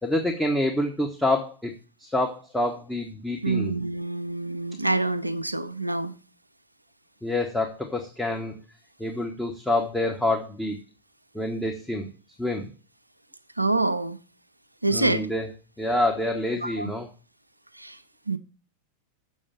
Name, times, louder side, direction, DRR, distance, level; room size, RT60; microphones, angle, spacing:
voice 1, 0.0-1.7 2.0-3.7 7.2-8.5 9.0-10.8 11.3-12.1 12.4-12.7 14.9-15.5 15.8-17.1, left 1 dB, 5° left, 1.3 m, -27 dB
voice 2, 3.4-6.2 13.6-14.2 14.8-15.3 16.6-16.9 17.8-18.0 18.3-18.4, right 2 dB, 85° right, 0.6 m, -26 dB
7.1 x 7.1 x 7.3 m
figure-of-eight pair, 90°, 0 cm